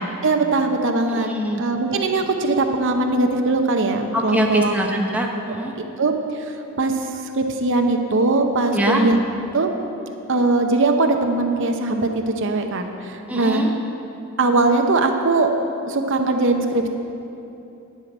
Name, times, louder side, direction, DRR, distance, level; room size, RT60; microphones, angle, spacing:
voice 1, 0.2-1.3 1.6-4.7 5.8-6.5 6.8-6.9 7.4-9.2 9.5-9.7 10.3-13.7 14.4-15.5 15.9-16.9, right 3 dB, 55° right, 5 dB, 0.7 m, -20 dB
voice 2, 1.1-1.6 4.1-5.7 8.7-9.0 13.3-13.7, equal, 5° right, 0 dB, 0.8 m, -23 dB
11.0 x 5.7 x 8.6 m, 2.8 s
head